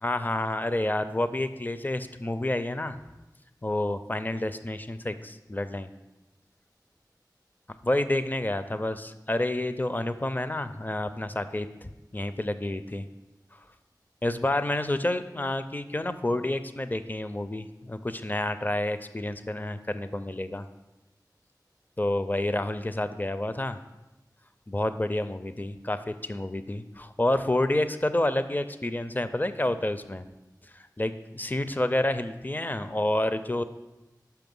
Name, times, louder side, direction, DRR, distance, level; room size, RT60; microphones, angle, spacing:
voice 1, 0.0-3.0 3.6-5.9 7.8-13.0 14.2-20.7 22.0-23.8 24.7-30.2 30.7-33.6, left 1 dB, 25° left, 11 dB, 0.4 m, -29 dB
5.8 x 5.8 x 5.4 m, 1.0 s
wide cardioid pair, 40°, 7 cm